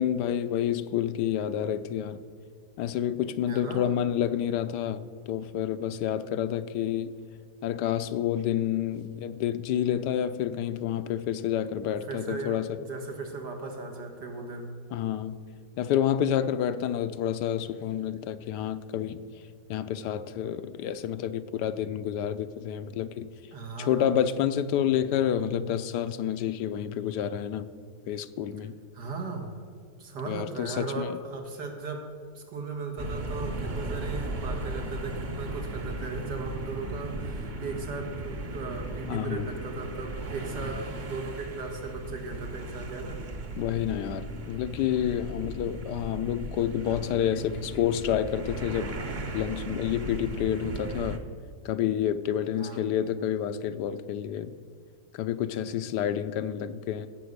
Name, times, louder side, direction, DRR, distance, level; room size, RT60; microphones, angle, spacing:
voice 1, 0.0-2.2 2.8-7.1 7.6-12.8 14.9-15.4 15.8-19.2 19.7-23.3 23.8-27.7 28.1-28.8 30.3-31.2 39.1-39.5 43.6-49.0 49.3-51.2 51.6-54.5 55.1-57.1, left 10 dB, 85° left, 1.2 m, -29 dB
voice 2, 3.5-3.9 12.1-14.7 23.5-24.2 28.9-29.6 30.0-32.1 32.4-43.2 52.5-52.9, right 3 dB, 90° right, 2.3 m, -37 dB
sound 1, 33.0-51.2, right 2 dB, 40° right, 0.8 m, -36 dB
16.5 x 6.8 x 6.6 m
omnidirectional pair, 1.8 m